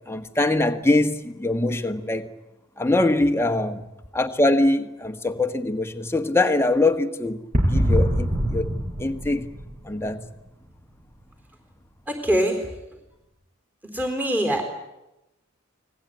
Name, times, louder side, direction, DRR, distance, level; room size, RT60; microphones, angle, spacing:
voice 1, 0.1-2.3 2.8-7.4 7.7-9.5 9.8-10.2, left 2 dB, 10° left, 1.5 m, -23 dB
sound 1, 7.5-10.2, equal, 35° right, 7.7 m, -23 dB
voice 2, 12.1-12.6 13.9-14.7, right 1 dB, 10° right, 4.0 m, -23 dB
29.5 x 20.0 x 9.4 m
head